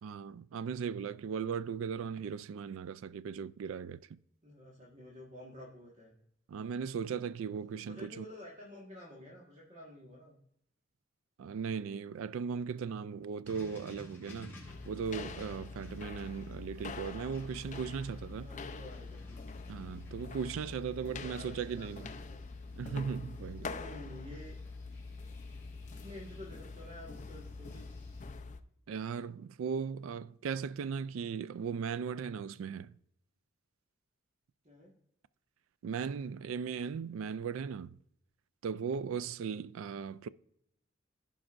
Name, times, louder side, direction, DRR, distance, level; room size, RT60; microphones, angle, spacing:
voice 1, 0.0-4.0 6.5-8.3 11.4-14.6 14.9-18.5 19.7-22.1 22.7-23.7 28.9-32.9 35.8-38.0 38.6-40.3, right 6 dB, 75° right, 0.3 m, -37 dB
voice 2, 4.4-6.1 7.8-10.4 18.4-19.4 21.1-22.4 23.6-24.5 25.9-27.8 34.6-34.9, left 1 dB, 35° right, 1.6 m, -50 dB
sound 1, 13.4-28.4, left 1 dB, 10° left, 3.2 m, -55 dB
sound 2, 14.7-28.6, left 4 dB, 35° left, 0.5 m, -45 dB
15.0 x 5.2 x 2.5 m
head